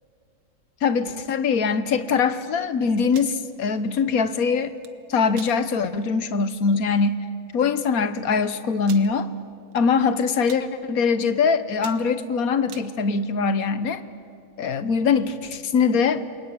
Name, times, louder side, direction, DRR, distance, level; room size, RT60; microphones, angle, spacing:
voice 1, 0.8-4.7 5.1-7.1 7.5-9.3 9.7-14.0 14.6-16.2, left 5 dB, 55° left, 12 dB, 1.4 m, -22 dB
sound 1, 3.0-3.4 4.6-4.9 5.3-5.5 6.0-6.1 6.5-6.7 7.5-7.6 7.8-7.9 8.8-9.1 9.7-10.0 10.3-10.7 11.2-11.4 11.7-12.9, right 8 dB, 75° right, 1.8 m, -43 dB
28.5 x 21.5 x 9.0 m, 2.3 s
omnidirectional pair, 1.9 m